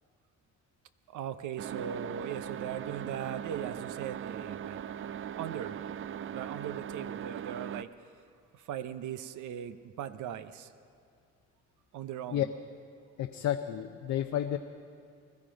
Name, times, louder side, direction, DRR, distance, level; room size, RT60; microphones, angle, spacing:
voice 1, 1.1-4.8 5.4-5.8 6.3-7.9 8.5-10.7 11.9-12.5, right 9 dB, 80° right, 11 dB, 0.8 m, -39 dB
sound 1, 1.6-7.8, right 9 dB, 45° right, 0.5 m, -39 dB
voice 2, 13.2-14.6, left 11 dB, 65° left, 5 dB, 0.7 m, -31 dB
21.0 x 13.5 x 5.2 m, 2.3 s
cardioid pair, 90°, 30 cm